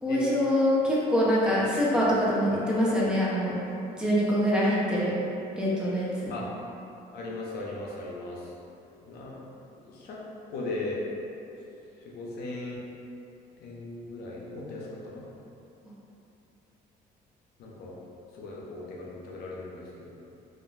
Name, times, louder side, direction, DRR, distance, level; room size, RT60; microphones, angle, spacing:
voice 1, 0.0-3.5 4.0-5.1 5.6-6.3, equal, 5° right, -8 dB, 0.5 m, -24 dB
voice 2, 7.1-8.4 9.1-9.4 9.8-10.2 10.5-11.0 12.0-12.8 13.6-15.3 17.6-17.9 18.4-20.2, left 2 dB, 70° left, -4 dB, 0.6 m, -38 dB
2.4 x 2.1 x 3.1 m, 2.8 s
cardioid pair, 110°, 17 cm